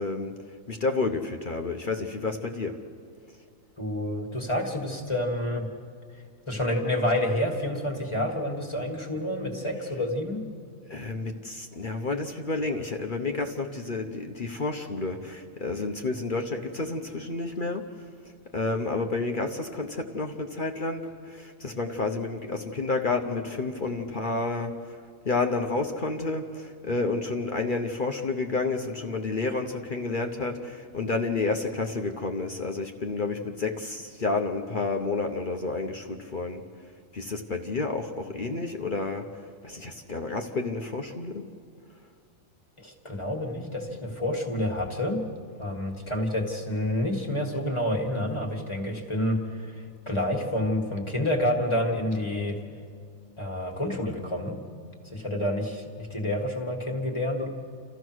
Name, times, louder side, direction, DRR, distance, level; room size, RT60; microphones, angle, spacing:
voice 1, 0.0-2.8 9.8-10.0 10.9-18.0 18.5-36.6 37.1-39.4 39.6-41.5, left 3 dB, 40° left, 4 dB, 1.0 m, -30 dB
voice 2, 3.8-5.7 6.5-10.4 42.8-45.2 45.6-49.7 50.1-52.6 53.4-54.6 55.1-57.5, left 1 dB, 20° left, 2 dB, 2.1 m, -28 dB
29.5 x 14.0 x 6.3 m, 2.2 s
omnidirectional pair, 1.4 m